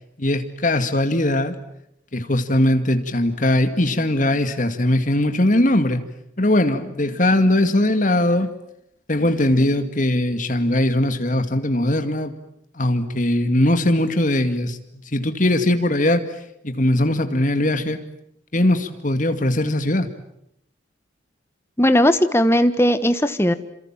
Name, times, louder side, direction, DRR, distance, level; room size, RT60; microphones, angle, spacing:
voice 1, 0.2-1.6 2.1-6.0 6.4-8.5 9.1-12.3 12.7-14.8 15.1-16.4 16.6-18.0 18.5-20.1, left 1 dB, 40° left, 8 dB, 2.2 m, -20 dB
voice 2, 21.8-23.5, equal, 15° left, 10 dB, 1.3 m, -17 dB
28.0 x 27.0 x 7.5 m, 0.78 s
head